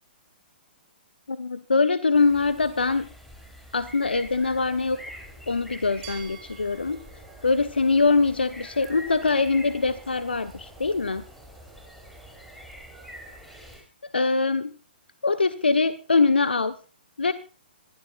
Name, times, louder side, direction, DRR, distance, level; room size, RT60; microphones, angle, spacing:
voice 1, 1.3-3.1 3.7-5.2 5.5-7.0 7.4-11.2 14.1-14.7 15.2-16.7 17.2-17.3, left 4 dB, 70° left, 10 dB, 1.2 m, -23 dB
sound 1, 2.1-13.8, equal, ahead, 4.8 m, -46 dB
sound 2, 4.2-13.8, right 3 dB, 15° right, 6.1 m, -53 dB
Glass, 6.0-8.9, right 9 dB, 30° right, 5.0 m, -48 dB
26.0 x 16.0 x 2.5 m, 0.36 s
figure-of-eight pair, 120°, 6 cm